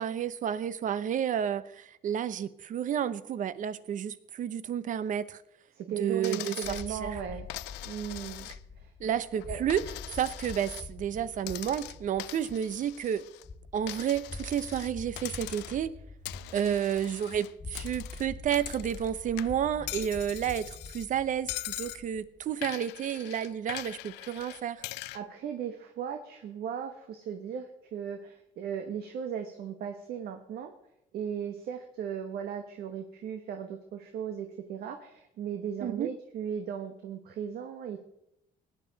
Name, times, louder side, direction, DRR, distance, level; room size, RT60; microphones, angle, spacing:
voice 1, 0.0-5.4 6.0-7.2 9.0-9.8 10.1-13.2 13.7-15.9 16.5-24.8 35.8-36.1, right 9 dB, 50° right, 16 dB, 0.7 m, -31 dB
voice 2, 5.7-7.5 7.8-8.5 8.8-8.9 9.5-9.6 16.5-16.7 25.1-30.7 31.1-38.0, right 8 dB, 65° right, 6 dB, 1.2 m, -37 dB
Coin (dropping), 6.2-6.9 7.5-8.8 9.2-10.9 11.4-13.5 13.9-14.9 15.2-15.9 16.2-19.1 19.4-21.1 21.5-22.0 22.6-25.2, left 19 dB, 90° left, 0.4 m, -42 dB
sound 1, 6.6-22.5, left 3 dB, 25° left, 1.7 m, -45 dB
17.5 x 9.8 x 4.0 m, 0.80 s
cardioid pair, 110°, 17 cm